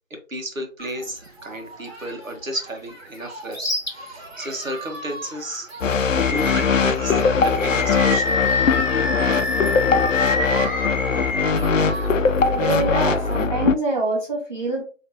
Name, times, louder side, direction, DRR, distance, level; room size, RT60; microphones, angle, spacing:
voice 1, 0.1-8.5, equal, 90° right, 3 dB, 1.4 m, -33 dB
Human group actions, 0.8-13.5, right 2 dB, 50° right, 1.2 m, -38 dB
Animal, 3.5-3.9 4.4-4.5 6.1-6.9 7.5-11.5, left 3 dB, 35° left, 0.8 m, -26 dB
sound 1, 5.8-13.8, left 5 dB, 75° left, 0.5 m, -21 dB
voice 2, 12.5-14.8, right 2 dB, 35° right, -7 dB, 1.8 m, -25 dB
4.4 x 3.1 x 2.7 m, 0.36 s
figure-of-eight pair, 175°, 39 cm